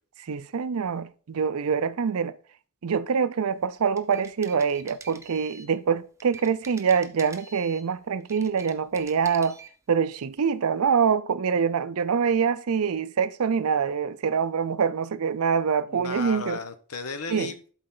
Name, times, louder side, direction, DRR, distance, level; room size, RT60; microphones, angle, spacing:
voice 1, 0.3-2.3 2.8-9.6 9.9-16.6 17.3-17.5, right 6 dB, 75° right, 0.5 m, -25 dB
sound 1, 3.8-5.7 6.2-7.9 8.2-9.7, right 4 dB, 15° right, 0.7 m, -46 dB
voice 2, 15.9-17.7, left 3 dB, 90° left, 1.0 m, -35 dB
11.5 x 4.2 x 3.8 m
head